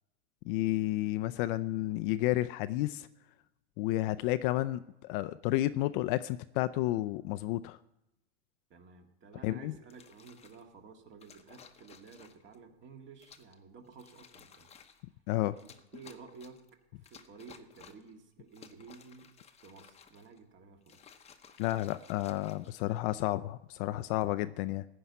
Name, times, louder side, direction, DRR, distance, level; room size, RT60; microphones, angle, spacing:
voice 1, 0.5-3.1 3.8-7.8 9.4-9.7 15.3-15.6 21.6-24.9, left 16 dB, 45° left, 13 dB, 0.5 m, -31 dB
voice 2, 8.7-14.7 15.5-16.6 17.0-19.3 19.6-21.1, right 5 dB, 30° right, 4 dB, 2.0 m, -53 dB
sound 1, 9.9-10.6 11.2-12.6 13.2-13.6 13.9-15.0 15.6-16.7 17.0-18.1 18.5-20.4 20.8-23.2 23.9-24.3, left 7 dB, 15° left, 0.9 m, -57 dB
15.5 x 5.6 x 9.5 m, 0.86 s
supercardioid pair, 130°, 36 cm